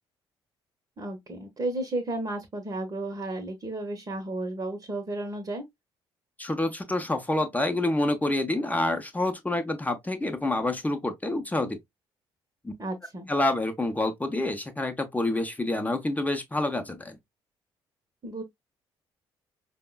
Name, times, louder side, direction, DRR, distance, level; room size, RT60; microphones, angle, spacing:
voice 1, 1.0-5.6 12.8-13.3 18.2-18.4, right 2 dB, 30° right, 0.9 m, -33 dB
voice 2, 6.4-11.8 12.6-12.7 13.3-17.2, left 2 dB, 10° left, 0.6 m, -27 dB
5.1 x 2.1 x 2.2 m
figure-of-eight pair, 45°, 13 cm